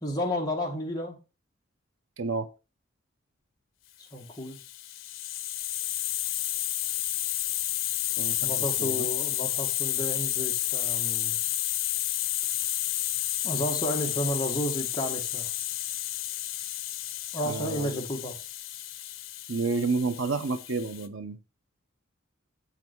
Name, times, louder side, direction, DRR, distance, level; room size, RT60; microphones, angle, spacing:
voice 1, 0.0-1.2 4.1-4.6 8.4-11.4 13.4-15.5 17.3-18.4, equal, 20° left, 0 dB, 1.9 m, -32 dB
voice 2, 2.2-2.5 8.2-9.1 17.4-18.0 19.5-21.4, right 4 dB, 85° right, 11 dB, 0.8 m, -30 dB
Hiss, 4.4-21.1, left 14 dB, 85° left, 0.7 m, -31 dB
8.1 x 6.0 x 4.6 m, 0.30 s
head